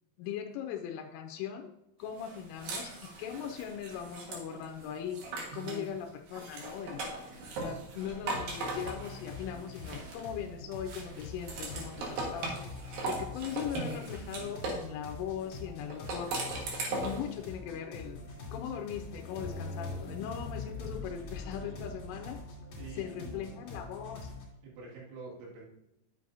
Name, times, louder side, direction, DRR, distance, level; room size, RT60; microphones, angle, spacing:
voice 1, 0.2-1.7 2.0-5.2 5.5-7.1 7.6-12.7 13.1-16.4 16.9-18.2 18.5-22.4 23.0-24.3, left 8 dB, 85° left, 4 dB, 3.1 m, -39 dB
sound 1, 2.2-5.9 6.3-10.4 10.9-14.9 15.9-17.3, right 3 dB, 60° right, 2.6 m, -39 dB
voice 2, 5.5-5.9 22.8-23.6 24.6-25.7, right 4 dB, 80° right, -5 dB, 4.6 m, -46 dB
sound 2, 7.7-8.2 9.3-23.0, left 3 dB, 65° left, 2.7 m, -47 dB
sound 3, 8.0-24.4, left 3 dB, 50° left, 2.6 m, -45 dB
10.5 x 7.6 x 2.6 m, 0.85 s
omnidirectional pair, 5.7 m